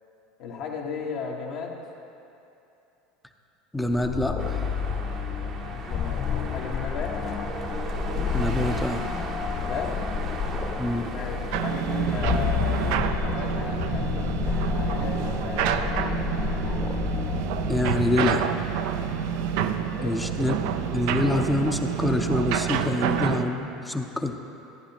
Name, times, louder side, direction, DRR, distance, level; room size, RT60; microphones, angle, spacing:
voice 1, 0.4-1.8 5.6-7.2 9.6-9.9 11.1-16.1 19.9-20.2, left 5 dB, 60° left, -1 dB, 1.5 m, -36 dB
voice 2, 3.7-4.7 8.3-9.1 10.8-11.1 17.7-18.5 20.0-20.5 20.9-24.4, left 1 dB, 10° left, 5 dB, 0.7 m, -26 dB
sound 1, 3.9-18.5, left 7 dB, 35° left, 0.3 m, -30 dB
sound 2, 4.4-13.0, right 4 dB, 45° right, 0.9 m, -37 dB
sound 3, 11.5-23.4, right 8 dB, 65° right, 0.4 m, -28 dB
14.0 x 9.8 x 3.0 m, 2.8 s
hypercardioid pair, 75°, 0 cm